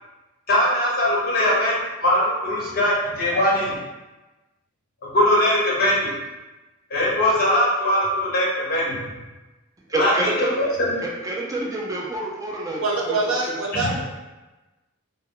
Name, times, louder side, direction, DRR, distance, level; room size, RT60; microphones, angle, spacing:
voice 1, 0.5-3.7 5.0-6.1 6.9-9.0 9.9-10.1 10.4-10.9, left 1 dB, 45° left, -5 dB, 0.8 m, -21 dB
voice 2, 9.9-10.7 11.0-12.8 13.1-13.2, right 2 dB, 15° right, -2 dB, 0.3 m, -27 dB
voice 3, 12.8-14.0, right 2 dB, 65° right, -2 dB, 0.6 m, -24 dB
2.1 x 2.1 x 3.6 m, 1.1 s
head